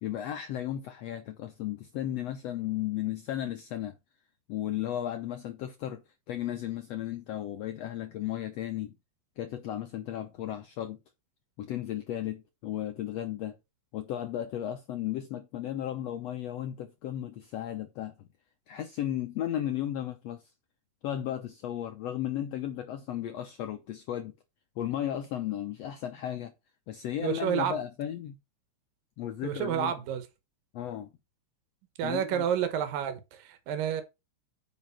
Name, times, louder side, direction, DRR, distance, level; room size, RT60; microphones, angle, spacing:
voice 1, 0.0-3.9 4.5-8.9 9.4-11.0 11.6-13.5 13.9-18.3 18.7-20.4 21.0-24.3 24.8-26.5 26.9-28.4 29.2-29.9 30.7-31.1 32.0-32.5, left 11 dB, 85° left, 1.5 m, -35 dB
voice 2, 27.2-27.7 29.4-30.2 32.0-34.0, right 9 dB, 90° right, 2.9 m, -30 dB
9.2 x 5.2 x 4.2 m
omnidirectional pair, 3.9 m